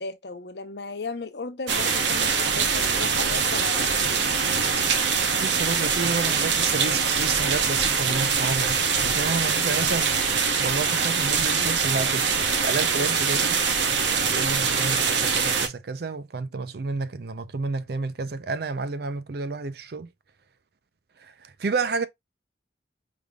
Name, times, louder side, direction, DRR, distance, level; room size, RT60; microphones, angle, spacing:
voice 1, 0.0-4.1, left 3 dB, 65° left, 0.8 m, -35 dB
sound 1, 1.7-15.7, right 5 dB, 80° right, 0.9 m, -23 dB
voice 2, 5.4-10.1 10.6-13.6 13.9-20.1 21.4-22.1, right 4 dB, 60° right, 0.5 m, -30 dB
5.0 x 3.4 x 2.3 m
head